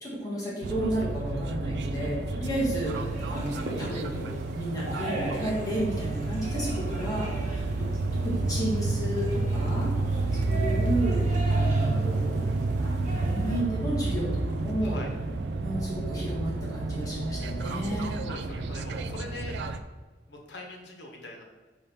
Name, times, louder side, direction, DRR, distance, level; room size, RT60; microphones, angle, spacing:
voice 1, 0.0-9.9 10.3-12.5 12.7-15.0 15.6-18.2, right 1 dB, 20° left, -7 dB, 1.6 m, -32 dB
sound 1, 0.6-19.8, right 2 dB, 70° right, 0.4 m, -30 dB
sound 2, 2.8-13.6, right 2 dB, 45° right, 1.4 m, -40 dB
voice 2, 18.2-19.6 20.3-21.4, left 2 dB, 85° left, 0 dB, 1.2 m, -42 dB
5.4 x 3.4 x 5.5 m, 1.3 s
head